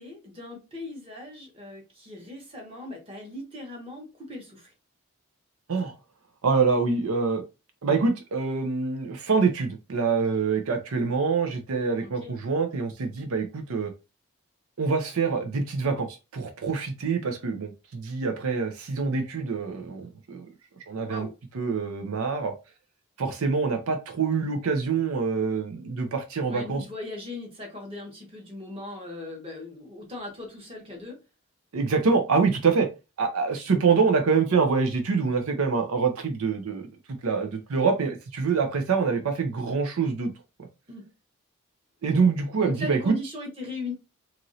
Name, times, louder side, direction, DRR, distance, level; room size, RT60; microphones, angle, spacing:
voice 1, 0.0-4.7 12.0-12.3 21.1-21.3 26.4-31.2 40.9-41.1 42.6-43.9, left 2 dB, 25° right, 1.0 m, -39 dB
voice 2, 6.4-7.4 7.8-13.9 14.8-20.5 20.9-21.3 21.5-22.5 23.2-26.8 31.7-32.9 33.2-36.9 37.2-40.3 42.0-43.2, right 5 dB, 75° right, 0.5 m, -25 dB
3.0 x 2.5 x 2.6 m
head